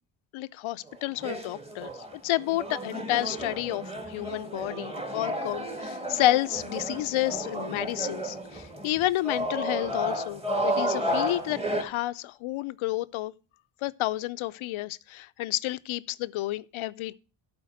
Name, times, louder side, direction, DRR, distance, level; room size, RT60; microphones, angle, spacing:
voice 1, 0.3-1.9 2.2-13.3 13.8-17.2, left 16 dB, 85° left, 0.6 m, -30 dB
sound 1, 0.9-11.8, equal, 15° right, 1.7 m, -32 dB
12.0 x 4.6 x 6.4 m
cardioid pair, 85°, 46 cm